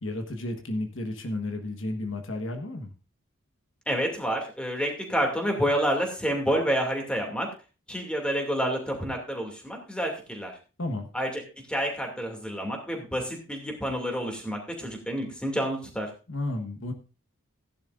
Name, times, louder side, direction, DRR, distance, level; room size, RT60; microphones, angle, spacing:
voice 1, 0.0-2.9 10.8-11.1 16.3-16.9, left 2 dB, 60° left, 5 dB, 1.4 m, -32 dB
voice 2, 3.9-7.5 7.9-10.6 11.1-11.3 11.7-16.1, equal, 5° left, 2 dB, 2.5 m, -29 dB
16.0 x 10.5 x 2.6 m, 0.33 s
head